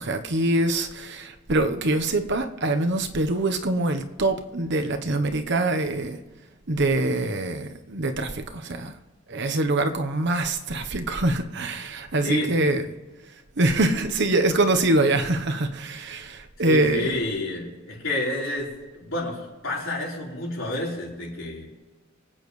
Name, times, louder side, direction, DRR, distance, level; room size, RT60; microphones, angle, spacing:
voice 1, 0.0-6.2 6.7-8.9 9.3-12.8 13.6-17.2, right 2 dB, 60° right, 1.0 m, -24 dB
voice 2, 12.2-12.7 16.6-18.7 18.9-21.7, left 2 dB, 75° left, 4.3 m, -29 dB
25.0 x 8.9 x 3.2 m
head